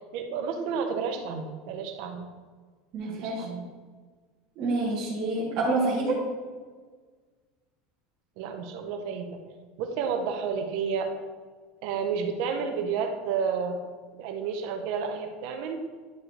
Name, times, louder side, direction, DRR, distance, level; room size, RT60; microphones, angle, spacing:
voice 1, 0.1-2.3 3.0-3.7 8.4-9.3 9.8-11.1 11.8-13.8 14.1-15.8, right 6 dB, 50° right, 5 dB, 0.8 m, -31 dB
voice 2, 2.9-3.5 4.6-6.2, right 2 dB, 30° right, -7 dB, 1.3 m, -27 dB
10.5 x 4.8 x 3.3 m, 1.5 s
supercardioid pair, 180°, 0 cm